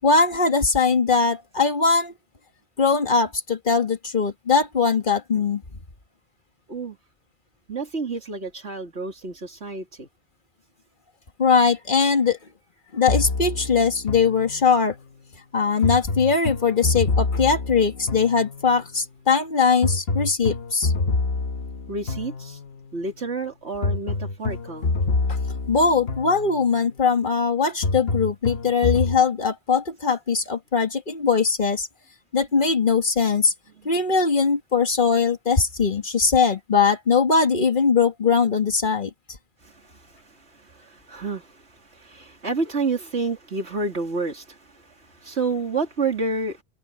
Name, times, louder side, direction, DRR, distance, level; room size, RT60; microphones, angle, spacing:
voice 1, 0.0-2.1 2.8-5.6 11.4-12.4 12.9-15.0 15.5-20.9 25.7-31.9 32.3-33.5 33.9-39.1, left 5 dB, 50° left, 2.0 m, -21 dB
voice 2, 7.7-10.1 21.9-22.6 22.9-24.9 39.6-46.6, right 3 dB, 90° right, 3.4 m, -30 dB
sound 1, 13.1-15.0 15.8-18.9 19.8-22.9 23.8-26.9 27.8-29.2, left 3 dB, 65° left, 1.5 m, -27 dB
omnidirectional pair, 1.1 m